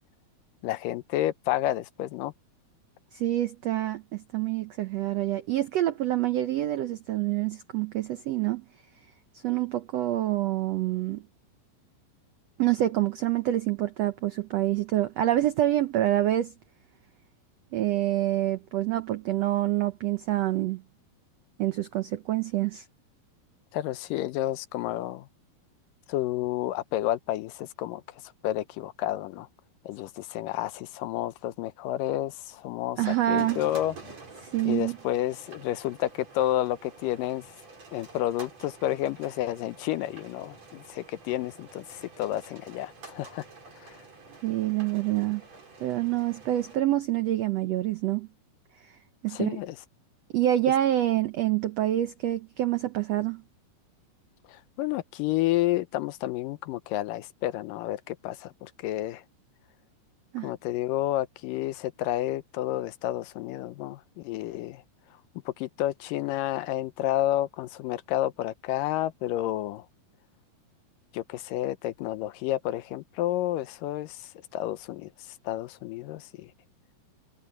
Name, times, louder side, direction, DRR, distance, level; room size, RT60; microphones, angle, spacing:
voice 1, 0.6-2.3 23.7-25.3 26.1-28.0 28.4-29.5 29.9-33.9 34.7-37.5 37.9-43.4 43.8-44.0 49.3-49.8 54.5-59.2 60.4-64.8 65.5-69.8 71.1-75.1 75.5-76.5, left 14 dB, 75° left, 2.2 m, -30 dB
voice 2, 3.1-8.6 9.3-11.2 12.6-16.5 17.7-20.8 21.6-22.8 33.0-33.6 34.4-35.0 44.4-45.4 45.8-48.3 48.8-48.9 49.2-49.6 50.3-53.4 60.3-60.5, right 14 dB, 85° right, 1.4 m, -27 dB
sound 1, 33.4-46.8, right 3 dB, 45° right, 6.2 m, -49 dB
omnidirectional pair, 4.1 m